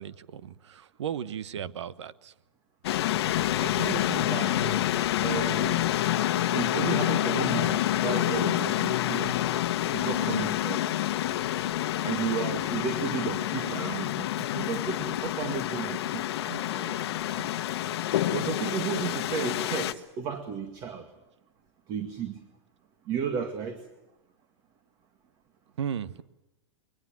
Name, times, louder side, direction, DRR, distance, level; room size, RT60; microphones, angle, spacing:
voice 1, 0.0-2.3 25.8-26.2, right 8 dB, 85° right, 1.2 m, -35 dB
sound 1, 2.8-19.9, left 13 dB, 65° left, 1.1 m, -28 dB
voice 2, 3.6-4.8 5.2-5.8 6.5-9.4 9.9-10.9 12.0-17.5 18.3-21.1 21.9-22.4 23.1-23.8, right 7 dB, 30° right, 2.1 m, -34 dB
22.5 x 19.0 x 7.6 m
hypercardioid pair, 150°, 15 cm